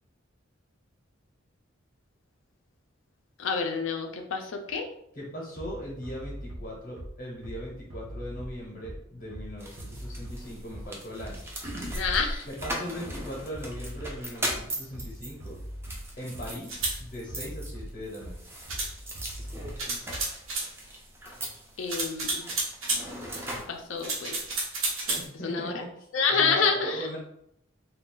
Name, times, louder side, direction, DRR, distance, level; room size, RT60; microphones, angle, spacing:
voice 1, 3.4-4.9 11.9-12.5 21.8-22.5 23.5-24.4 25.1-25.8 26.1-27.1, left 5 dB, 75° left, 4 dB, 0.4 m, -28 dB
voice 2, 5.2-11.5 12.5-15.6 16.2-18.5 25.2-27.2, equal, 40° left, -4 dB, 0.7 m, -39 dB
Bass drum, 5.6-20.5, equal, 65° right, 0.6 m, -42 dB
sound 1, 9.6-24.5, right 1 dB, 10° right, 0.4 m, -39 dB
sound 2, 16.6-17.0 18.7-18.9 19.8-20.7 21.9-23.0 24.0-25.2, right 3 dB, 80° right, 0.9 m, -30 dB
2.4 x 2.3 x 3.7 m, 0.75 s
head